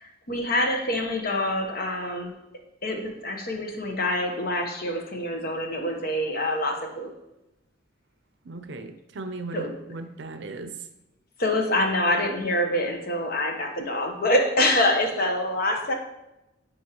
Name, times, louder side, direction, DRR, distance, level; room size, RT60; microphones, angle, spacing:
voice 1, 0.0-2.3 2.8-7.1 9.5-9.7 11.4-15.9, left 1 dB, 50° left, 3 dB, 1.0 m, -26 dB
voice 2, 8.4-10.7, right 2 dB, 65° right, 8 dB, 0.6 m, -37 dB
9.8 x 4.4 x 3.0 m, 0.92 s
head